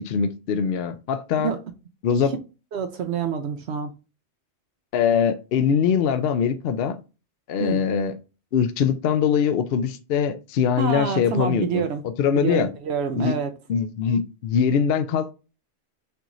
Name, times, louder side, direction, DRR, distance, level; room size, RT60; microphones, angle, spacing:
voice 1, 0.1-1.5 2.0-2.3 4.9-7.0 7.5-8.1 8.5-11.8 12.2-12.7 13.1-13.4 13.7-15.3, left 7 dB, 65° left, 0.7 m, -22 dB
voice 2, 2.7-3.9 7.6-7.8 10.8-12.0 12.4-13.5, right 6 dB, 70° right, 0.9 m, -27 dB
6.8 x 3.0 x 2.5 m
omnidirectional pair, 1.2 m